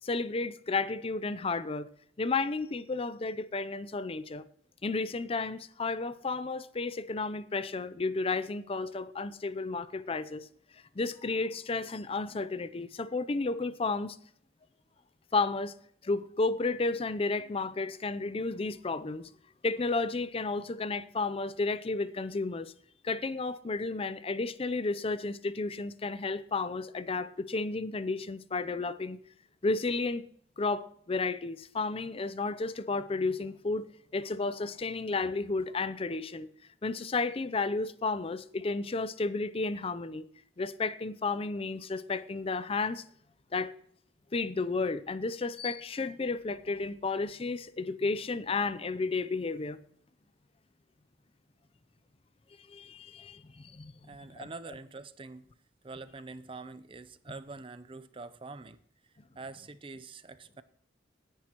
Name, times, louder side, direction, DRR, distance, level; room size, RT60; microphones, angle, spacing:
voice 1, 0.0-1.9 2.2-4.4 4.8-10.5 11.0-14.2 15.3-15.7 16.0-19.3 19.6-22.7 23.0-29.2 29.6-30.2 30.6-33.9 34.1-36.5 36.8-40.3 40.6-43.0 43.5-43.7 44.3-49.8 52.7-53.9 54.4-54.5, left 3 dB, 30° left, 0.5 m, -32 dB
voice 2, 54.0-55.5 55.8-58.8 59.4-60.6, right 3 dB, 30° right, 0.6 m, -45 dB
19.5 x 10.5 x 2.9 m
head